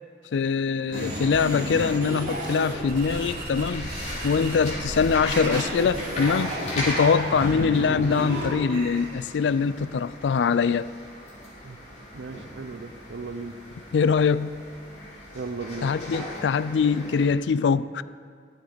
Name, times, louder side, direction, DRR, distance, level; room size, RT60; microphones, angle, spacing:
voice 1, 0.3-4.0 4.2-10.9 13.9-14.6 15.8-18.0, left 5 dB, 85° left, 0.4 m, -23 dB
sound 1, 0.9-9.0, right 1 dB, 50° right, 3.6 m, -32 dB
sound 2, 2.4-17.3, left 1 dB, 40° left, 3.3 m, -39 dB
voice 2, 12.1-13.6 15.3-15.9, right 4 dB, 85° right, 0.7 m, -36 dB
15.5 x 12.0 x 4.0 m
head